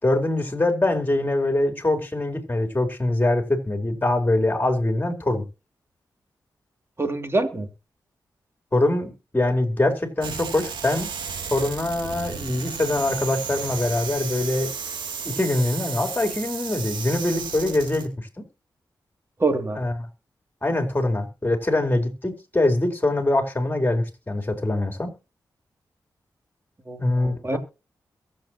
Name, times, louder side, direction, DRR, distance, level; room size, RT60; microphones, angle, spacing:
voice 1, 0.0-5.4 8.7-11.1 11.5-14.7 15.2-18.4 19.7-19.9 20.6-25.1 27.0-27.6, left 2 dB, 25° left, 4.3 m, -23 dB
voice 2, 7.0-7.7 19.4-19.8 26.9-27.6, right 3 dB, 30° right, 2.9 m, -25 dB
sound 1, 10.2-18.1, right 6 dB, 90° right, 2.5 m, -33 dB
22.5 x 7.8 x 3.1 m
cardioid pair, 60°, 8 cm